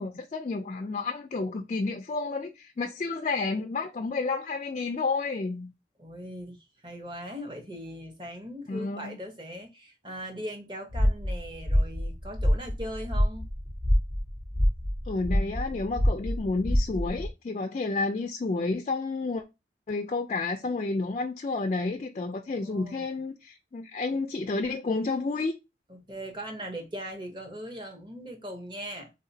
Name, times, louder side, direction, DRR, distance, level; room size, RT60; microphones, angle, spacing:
voice 1, 0.0-5.7 8.7-9.2 15.1-19.4 19.9-25.5, left 3 dB, 35° left, 0.3 m, -30 dB
voice 2, 6.0-13.5 22.5-23.1 25.9-29.1, equal, 25° right, 0.8 m, -40 dB
sound 1, 10.9-17.3, equal, 90° right, 2.3 m, -26 dB
3.8 x 2.8 x 2.7 m
head